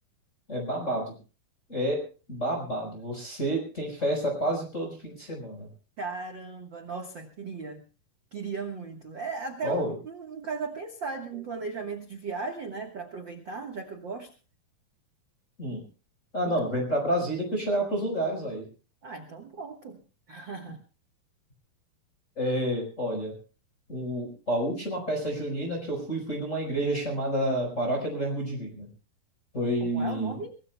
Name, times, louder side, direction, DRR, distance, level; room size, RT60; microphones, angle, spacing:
voice 1, 0.5-1.2 1.7-2.0 2.3-5.7 9.6-9.9 15.6-15.8 16.3-18.6 22.4-23.3 23.9-28.9 29.5-30.4, right 1 dB, 20° left, 0 dB, 4.7 m, -29 dB
voice 2, 6.0-7.8 8.3-14.3 16.4-16.8 19.0-20.0 20.3-20.8 29.8-30.5, right 4 dB, 70° right, 4 dB, 1.0 m, -37 dB
24.0 x 20.0 x 2.2 m, 0.36 s
omnidirectional pair, 4.4 m